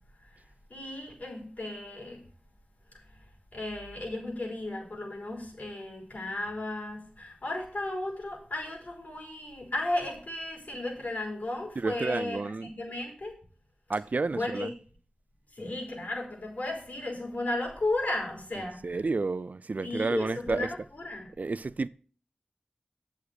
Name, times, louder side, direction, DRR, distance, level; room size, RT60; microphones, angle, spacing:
voice 1, 0.7-2.2 3.5-13.3 14.3-14.7 15.5-19.0 19.8-21.3, left 2 dB, 65° left, 3.8 m, -34 dB
voice 2, 11.8-12.7 13.9-14.7 18.8-20.7 21.4-21.9, right 3 dB, 60° right, 0.3 m, -30 dB
8.6 x 6.4 x 4.8 m
wide cardioid pair, 50°, 3 cm